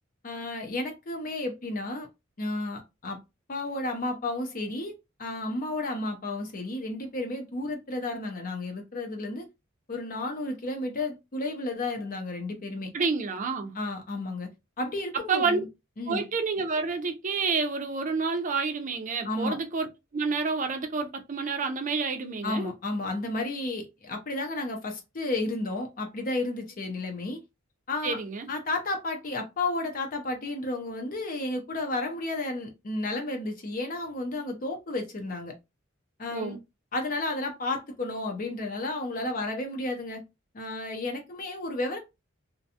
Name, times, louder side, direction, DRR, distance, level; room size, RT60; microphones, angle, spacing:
voice 1, 0.2-2.1 2.4-3.2 3.5-4.9 5.2-9.4 9.9-12.9 13.7-14.5 14.8-15.6 16.0-16.2 19.2-19.6 22.4-27.4 27.9-28.2 28.5-35.5 36.2-36.6 36.9-40.2 40.5-42.0, left 2 dB, 45° left, 0.6 m, -32 dB
voice 2, 12.9-13.8 15.3-15.6 16.1-19.9 20.1-22.7 28.0-28.5 36.3-36.6, right 4 dB, 40° right, 0.5 m, -29 dB
2.5 x 2.2 x 2.7 m
head